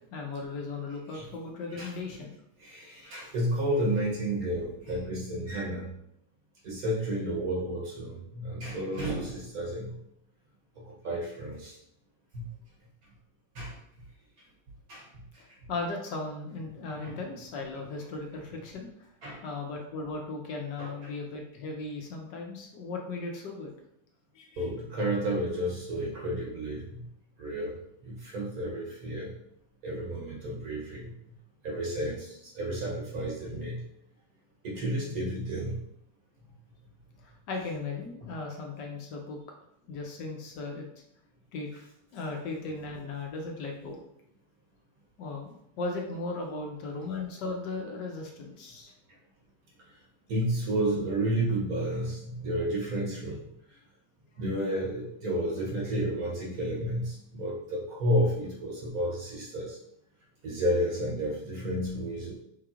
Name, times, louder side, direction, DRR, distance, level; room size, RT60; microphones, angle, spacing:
voice 1, 0.1-2.3 15.7-18.9 19.4-23.7 24.3-24.7 37.5-39.4 39.9-40.9 41.5-41.7 42.1-44.0 45.2-48.9, left 3 dB, 70° left, 1 dB, 1.1 m, -37 dB
voice 2, 2.6-5.9 6.6-10.0 10.8-11.8 12.3-12.5 13.5-13.8 14.9-15.1 15.5-15.6 17.0-17.2 19.2-19.4 20.8-21.2 24.6-27.1 27.4-27.7 28.0-29.3 29.8-31.1 31.6-33.8 34.6-35.8 50.3-53.4 54.4-59.8 60.4-62.4, right 1 dB, 60° right, -2 dB, 1.0 m, -31 dB
5.5 x 3.3 x 2.4 m, 0.76 s
omnidirectional pair, 2.3 m